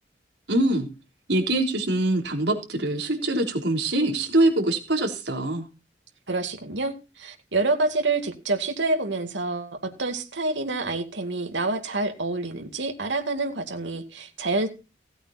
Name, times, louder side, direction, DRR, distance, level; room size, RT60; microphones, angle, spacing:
voice 1, 0.5-0.9 1.3-5.6, right 1 dB, 70° right, 4 dB, 3.7 m, -23 dB
voice 2, 6.3-14.7, right 3 dB, 85° right, 4 dB, 2.4 m, -27 dB
17.0 x 8.8 x 4.3 m, 0.30 s
head